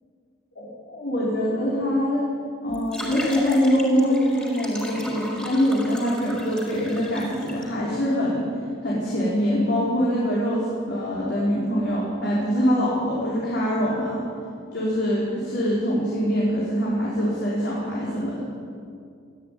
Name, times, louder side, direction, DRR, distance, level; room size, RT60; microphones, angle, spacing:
voice 1, 0.6-2.3 2.6-8.5 8.8-14.2 14.7-18.4, equal, 65° left, -6 dB, 5.5 m, -24 dB
sound 1, 2.7-7.6, equal, 5° left, 4.2 m, -37 dB
21.0 x 14.0 x 9.7 m, 2.3 s
head